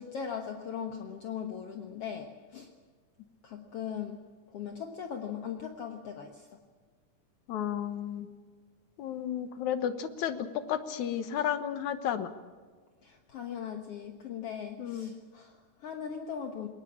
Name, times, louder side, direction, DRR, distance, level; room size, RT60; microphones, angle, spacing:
voice 1, 0.0-2.7 3.4-4.2 4.5-6.6 13.0-16.7, left 7 dB, 55° left, 4 dB, 2.0 m, -39 dB
voice 2, 7.5-8.3 9.0-12.3 14.8-15.1, left 9 dB, 75° left, 11 dB, 2.5 m, -32 dB
21.5 x 19.0 x 7.3 m, 1.5 s
omnidirectional pair, 3.6 m